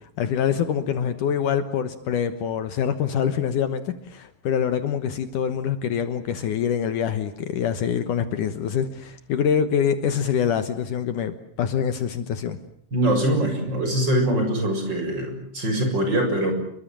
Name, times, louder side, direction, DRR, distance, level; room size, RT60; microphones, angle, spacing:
voice 1, 0.2-12.6, left 8 dB, 65° left, 10 dB, 2.6 m, -25 dB
voice 2, 12.9-16.5, right 1 dB, 30° right, 4 dB, 7.4 m, -23 dB
28.5 x 23.5 x 7.6 m, 0.67 s
omnidirectional pair, 4.1 m